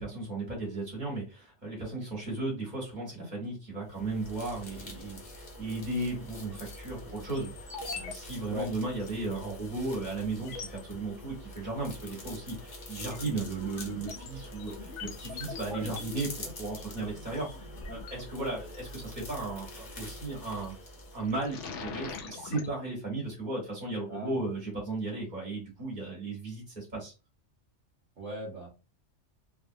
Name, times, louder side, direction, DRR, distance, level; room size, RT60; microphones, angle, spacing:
voice 1, 0.0-7.7 7.9-20.7 21.1-27.1, right 2 dB, 40° right, -2 dB, 1.5 m, -35 dB
sound 1, 3.8-21.7, left 1 dB, 40° left, 0.9 m, -45 dB
sound 2, 6.3-6.8 7.3-8.2 8.4-8.5 9.0-9.1 9.8-9.9 10.3-10.8 12.1-12.4 12.8-18.8 20.4-20.7 21.1-22.7, left 5 dB, 75° left, 1.0 m, -43 dB
voice 2, 24.1-24.4 28.2-28.7, equal, 75° right, -3 dB, 1.4 m, -38 dB
3.4 x 2.5 x 2.7 m, 0.31 s
omnidirectional pair, 1.3 m